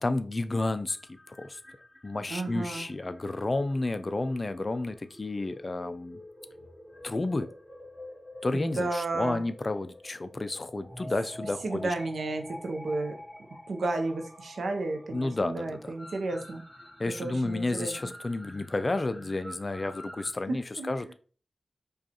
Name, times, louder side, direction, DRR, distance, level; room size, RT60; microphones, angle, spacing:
voice 1, 0.0-1.0 1.3-1.6 2.0-6.2 7.0-7.5 8.4-11.9 15.1-15.9 17.0-21.1, left 2 dB, 40° left, 11 dB, 0.3 m, -31 dB
sound 1, 0.9-20.3, left 1 dB, 15° left, 1.8 m, -48 dB
voice 2, 2.3-2.9 8.5-9.4 11.6-13.2 13.7-16.6 17.2-17.9 20.8-21.0, right 2 dB, 85° right, 5 dB, 0.6 m, -32 dB
4.9 x 2.3 x 2.8 m, 0.41 s
cardioid pair, 60°, 0 cm